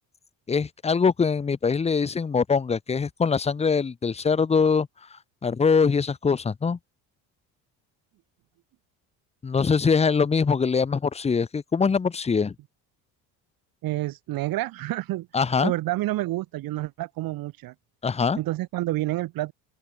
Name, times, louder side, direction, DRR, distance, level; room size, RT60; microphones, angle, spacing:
voice 1, 0.5-4.9 5.4-6.8 9.4-12.5 15.3-15.7 18.0-18.4, left 5 dB, 15° left, 0.7 m, -23 dB
voice 2, 13.8-15.3 15.6-17.7 18.4-19.5, right 17 dB, 65° right, 1.7 m, -28 dB
open air
cardioid pair, 100°, 37 cm